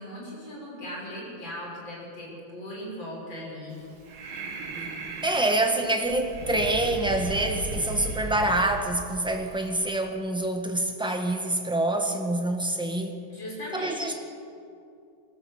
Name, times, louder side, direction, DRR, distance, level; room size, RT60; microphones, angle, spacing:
voice 1, 0.0-3.8 13.3-14.2, left 1 dB, 70° left, -4 dB, 6.9 m, -38 dB
Breathing, 3.7-9.7, right 3 dB, 75° right, 2.6 m, -37 dB
voice 2, 5.2-13.2 13.7-14.1, right 1 dB, 5° right, 3 dB, 1.5 m, -26 dB
25.0 x 13.5 x 8.2 m, 2.5 s
omnidirectional pair, 2.2 m